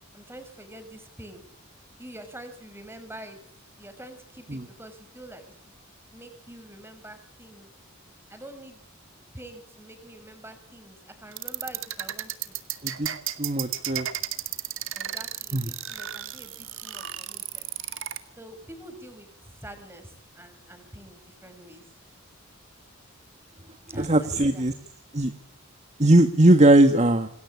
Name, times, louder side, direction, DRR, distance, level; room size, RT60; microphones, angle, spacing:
voice 1, 0.1-1.4 2.0-3.4 3.8-5.5 6.1-7.7 8.3-8.8 9.3-12.5 14.9-17.7 18.4-21.8 23.9-24.7, right 1 dB, 10° right, 8 dB, 6.5 m, -45 dB
sound 1, 11.3-18.2, right 12 dB, 65° right, 2.5 m, -33 dB
voice 2, 13.4-14.1 15.5-15.7 24.0-24.7 25.1-25.3 26.0-27.3, right 1 dB, 35° right, 8 dB, 1.6 m, -19 dB
28.0 x 21.0 x 9.9 m, 0.68 s
head